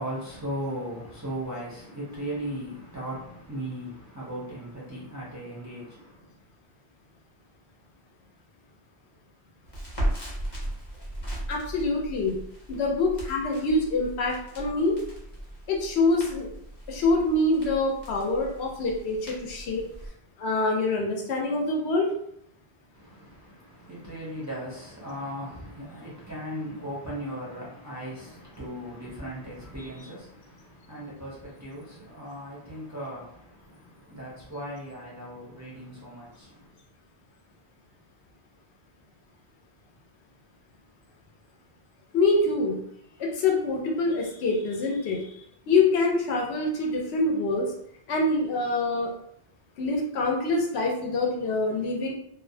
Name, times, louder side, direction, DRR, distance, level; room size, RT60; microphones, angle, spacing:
voice 1, 0.0-6.3 22.9-36.7, equal, 25° right, -7 dB, 0.4 m, -37 dB
Crackle, 9.7-20.1, right 1 dB, 25° left, 0.9 m, -37 dB
voice 2, 11.5-12.4 12.7-15.0 15.7-16.5 16.9-19.8 20.4-22.1 42.1-42.8 43.2-47.7 48.1-49.1 49.8-52.1, left 2 dB, 80° left, 0 dB, 0.9 m, -25 dB
2.4 x 2.1 x 2.6 m, 0.72 s
omnidirectional pair, 1.1 m